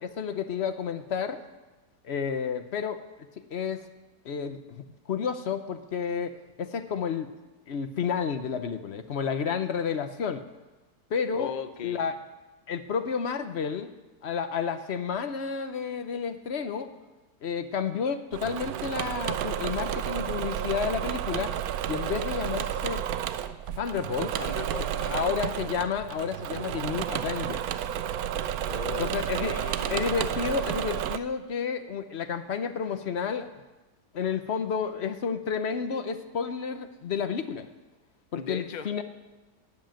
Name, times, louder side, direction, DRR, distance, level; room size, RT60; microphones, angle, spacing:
voice 1, 0.0-1.4 2.0-3.0 3.4-3.8 4.2-7.3 7.7-10.5 11.1-11.5 11.8-12.1 12.7-13.9 14.2-16.9 17.4-21.5 21.9-23.0 23.8-24.3 25.1-27.8 29.0-29.5 29.9-33.5 34.1-37.7 38.3-39.0, left 6 dB, 50° left, 9 dB, 0.8 m, -31 dB
voice 2, 11.3-12.0 24.2-25.2 28.7-30.0 38.3-38.9, left 7 dB, 85° left, 9 dB, 0.4 m, -38 dB
Engine / Mechanisms, 18.3-31.2, right 10 dB, 70° right, 1.0 m, -31 dB
12.5 x 7.7 x 9.0 m, 1.1 s
omnidirectional pair, 1.8 m